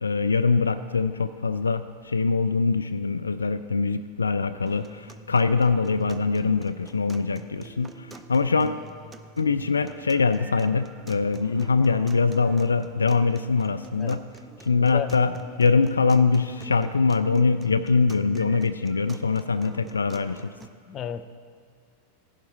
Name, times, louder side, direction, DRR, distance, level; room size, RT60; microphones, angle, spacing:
voice 1, 0.0-8.8 9.4-14.2 14.6-20.6, left 4 dB, 75° left, 12 dB, 0.3 m, -23 dB
sound 1, 4.7-20.7, right 2 dB, 15° right, 0.6 m, -46 dB
voice 2, 14.8-15.1 20.9-21.3, left 10 dB, 30° left, 10 dB, 0.6 m, -32 dB
16.0 x 11.5 x 4.1 m, 2.1 s
figure-of-eight pair, 90°, 0 cm